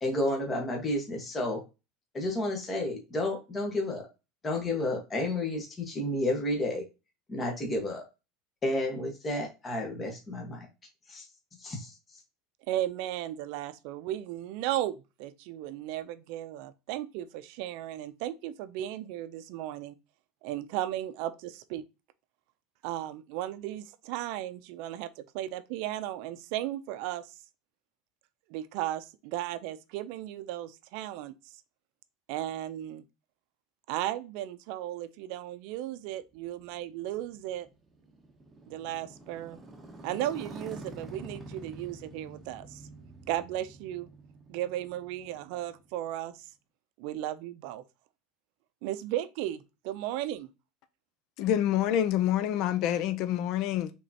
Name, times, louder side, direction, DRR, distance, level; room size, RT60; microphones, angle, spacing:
voice 1, 0.0-1.6 2.1-4.1 4.4-6.8 7.3-8.0 8.6-10.7 11.1-11.2 11.6-11.9, left 1 dB, 20° left, 1.3 m, -31 dB
voice 2, 12.7-19.9 20.4-21.8 22.8-27.3 28.5-31.3 32.3-33.0 33.9-37.7 38.7-39.6 40.0-42.8 43.3-44.1 44.5-46.4 47.0-47.8 48.8-50.5, right 13 dB, 65° right, 0.5 m, -35 dB
Motorcycle, 36.3-46.3, right 2 dB, 15° right, 1.0 m, -48 dB
voice 3, 51.4-53.9, left 11 dB, 55° left, 0.5 m, -27 dB
5.0 x 3.5 x 2.8 m
supercardioid pair, 140°, 0 cm